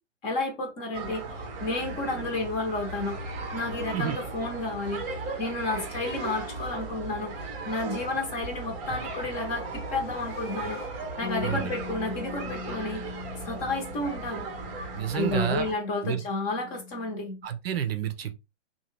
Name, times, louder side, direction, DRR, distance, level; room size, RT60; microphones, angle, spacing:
voice 1, 0.2-1.3 1.6-3.2 3.5-5.0 5.4-10.8 11.2-13.0 13.4-14.4 15.1-17.4, left 2 dB, 25° left, 0.9 m, -31 dB
sound 1, 0.9-15.7, right 3 dB, 20° right, 0.7 m, -37 dB
sound 2, 8.4-11.4, left 3 dB, 85° left, 0.9 m, -46 dB
Bass guitar, 11.2-17.5, left 5 dB, 60° left, 0.7 m, -42 dB
voice 2, 11.4-11.7 14.9-15.7 16.0-16.2 17.4-18.3, right 8 dB, 55° right, 0.6 m, -29 dB
2.8 x 2.3 x 3.2 m
hypercardioid pair, 125°, 36 cm